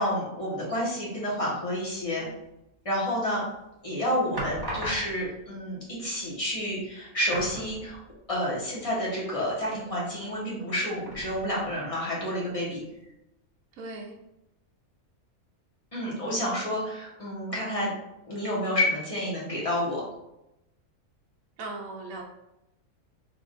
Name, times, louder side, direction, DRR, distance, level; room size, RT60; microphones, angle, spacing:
voice 1, 0.0-2.3 2.8-3.4 3.8-8.0 8.3-12.8 15.9-17.9 18.2-20.0, equal, 25° left, -6 dB, 1.2 m, -29 dB
sound 1, 3.1-3.6 4.3-5.4 6.4-6.5 6.8-6.9 7.3-8.3 8.6-8.7 11.0-11.7 12.3-12.4, right 1 dB, 20° right, 0.9 m, -37 dB
voice 2, 13.8-14.1 21.6-22.2, right 2 dB, 85° right, 1 dB, 1.1 m, -37 dB
3.7 x 3.7 x 2.5 m, 0.89 s
omnidirectional pair, 1.4 m